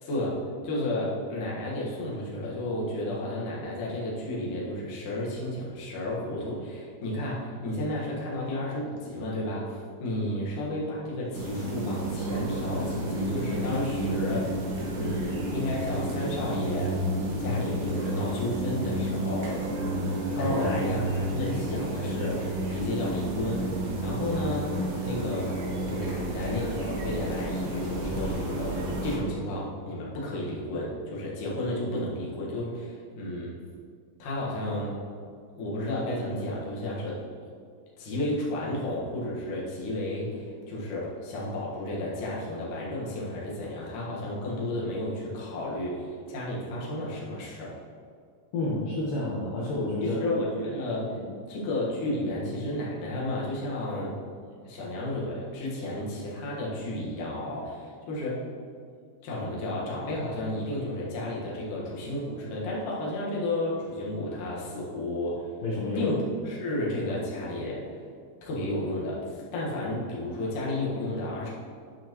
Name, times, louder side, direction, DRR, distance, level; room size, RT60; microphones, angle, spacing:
voice 1, 0.0-14.7 14.9-17.1 17.4-19.6 20.4-25.6 25.9-33.6 34.2-35.0 35.5-37.3 38.0-47.8 50.0-51.2 51.5-54.2 54.6-58.5 59.2-65.5 66.0-67.9 68.4-71.5, left 1 dB, 60° left, -5 dB, 2.4 m, -32 dB
sound 1, 11.3-29.2, right 1 dB, 75° right, 3.8 m, -31 dB
voice 2, 20.4-20.8 48.5-50.3 51.1-51.2 65.6-66.1, left 2 dB, 75° left, -6 dB, 2.0 m, -29 dB
11.5 x 5.7 x 3.1 m, 2.2 s
omnidirectional pair, 5.4 m